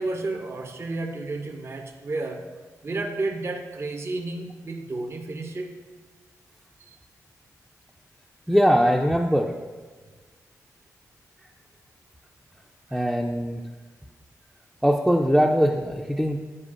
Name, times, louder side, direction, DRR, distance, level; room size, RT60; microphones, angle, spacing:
voice 1, 0.0-2.5 2.8-5.7 6.8-6.9 12.9-13.0, right 2 dB, 45° right, 3 dB, 0.6 m, -31 dB
voice 2, 8.5-9.5 12.9-13.6 14.8-16.4, equal, ahead, 0 dB, 0.4 m, -21 dB
9.7 x 4.5 x 2.5 m, 1.4 s
cardioid pair, 70°, 6 cm